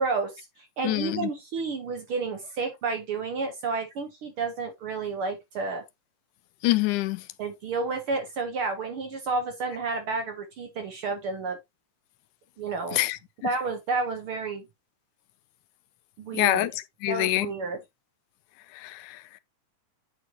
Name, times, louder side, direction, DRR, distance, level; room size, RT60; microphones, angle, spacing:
voice 1, 0.0-5.8 7.4-11.6 12.6-13.0 13.4-14.7 16.2-16.7 17.1-17.8, right 4 dB, 60° right, 1.5 m, -31 dB
voice 2, 0.8-1.3 6.6-7.2 12.9-13.2 16.3-16.7 17.0-17.5 18.7-19.4, left 17 dB, 90° left, 2.1 m, -25 dB
9.3 x 4.3 x 3.1 m
omnidirectional pair, 3.5 m